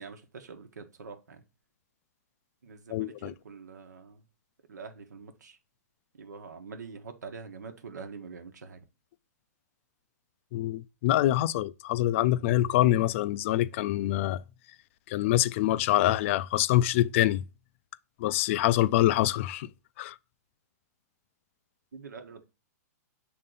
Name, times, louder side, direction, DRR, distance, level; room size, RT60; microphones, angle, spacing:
voice 1, 0.0-1.4 2.6-4.2 4.7-5.6 6.2-8.8 21.9-22.5, right 5 dB, 90° right, 1.2 m, -45 dB
voice 2, 2.9-3.3 10.5-14.4 15.1-17.4 18.2-19.7 20.0-20.1, left 14 dB, 45° left, 0.4 m, -25 dB
6.4 x 3.8 x 3.9 m
hypercardioid pair, 140°, 9 cm